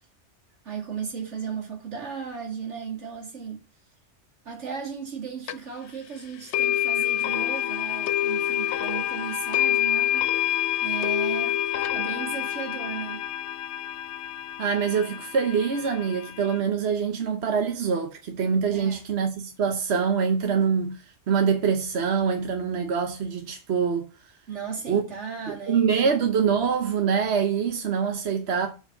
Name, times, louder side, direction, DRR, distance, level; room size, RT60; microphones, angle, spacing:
voice 1, 0.6-3.6 4.4-10.5 10.8-11.6 11.9-13.2 18.7-19.0 24.5-26.3, right 6 dB, 85° right, 2.3 m, -36 dB
sound 1, 5.5-5.6 6.5-16.6, left 12 dB, 80° left, 0.9 m, -27 dB
voice 2, 14.6-24.1 24.9-25.0 25.5-28.7, right 6 dB, 65° right, 1.3 m, -25 dB
7.4 x 4.5 x 6.5 m
omnidirectional pair, 1.2 m